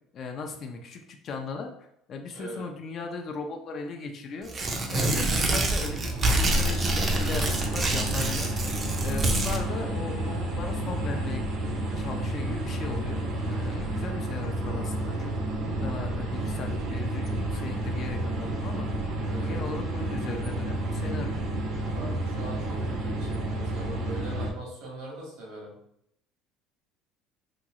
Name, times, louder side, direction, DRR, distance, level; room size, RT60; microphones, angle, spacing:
voice 1, 0.1-1.7 2.1-4.5 4.9-8.5 9.0-11.5 11.8-15.3 15.8-18.9 19.4-21.4, left 4 dB, 45° left, 4 dB, 0.5 m, -37 dB
voice 2, 2.3-2.6 19.2-19.6 21.9-25.8, right 2 dB, 85° right, -2 dB, 1.3 m, -41 dB
Tearing, 4.4-9.6, right 2 dB, 25° right, 0.5 m, -27 dB
sound 1, 5.8-24.5, right 1 dB, 65° right, 0.7 m, -30 dB
2.9 x 2.7 x 2.5 m, 0.74 s
cardioid pair, 120°, 0 cm